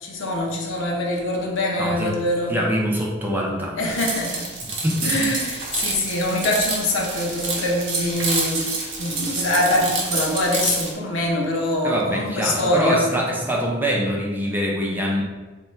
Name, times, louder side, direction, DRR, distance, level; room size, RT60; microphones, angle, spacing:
voice 1, 0.0-2.6 3.8-4.5 5.0-13.1, left 1 dB, 90° left, -1 dB, 0.8 m, -24 dB
voice 2, 1.8-2.2 2.5-3.8 4.6-5.1 11.8-15.2, equal, 10° right, -2 dB, 0.6 m, -24 dB
sound 1, 3.8-10.9, right 3 dB, 85° right, 0.8 m, -28 dB
3.5 x 2.3 x 4.3 m, 1.3 s
head